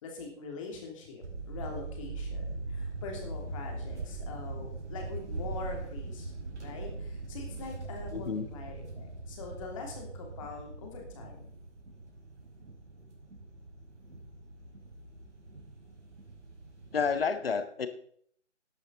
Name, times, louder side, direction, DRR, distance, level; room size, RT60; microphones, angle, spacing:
voice 1, 0.0-6.3 6.6-11.5, left 4 dB, 25° left, 1 dB, 3.0 m, -43 dB
sound 1, 1.2-17.2, right 3 dB, 70° right, 4.8 m, -41 dB
voice 2, 8.1-8.4 16.9-17.9, left 5 dB, 50° left, 10 dB, 1.3 m, -30 dB
13.5 x 11.5 x 4.0 m, 0.64 s
figure-of-eight pair, 150°, 36 cm